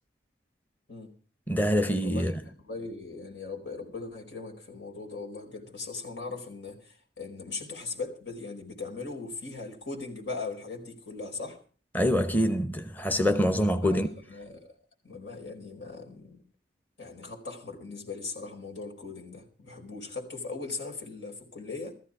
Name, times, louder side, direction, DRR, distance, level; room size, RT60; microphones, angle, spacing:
voice 1, 1.5-2.3 11.9-14.1, equal, 10° left, 0.9 m, -25 dB
voice 2, 2.0-11.6 13.8-14.7 15.0-16.4 17.0-21.9, left 3 dB, 90° left, 4.6 m, -39 dB
16.5 x 14.5 x 4.8 m
head